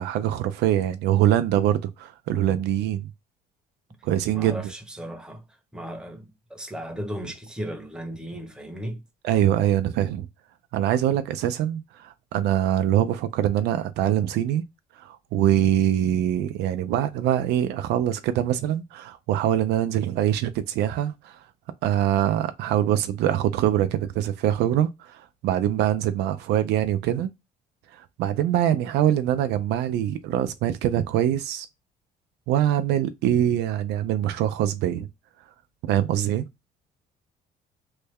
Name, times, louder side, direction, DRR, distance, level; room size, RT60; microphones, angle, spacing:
voice 1, 0.0-3.1 4.0-4.6 9.2-10.3 10.7-14.6 15.0-21.4 21.8-27.3 27.9-31.7 32.5-35.1 35.9-36.4, right 11 dB, 80° right, 0.4 m, -23 dB
voice 2, 4.3-9.0, equal, 5° right, 0.9 m, -36 dB
3.2 x 2.2 x 3.4 m
cardioid pair, 110°, 17 cm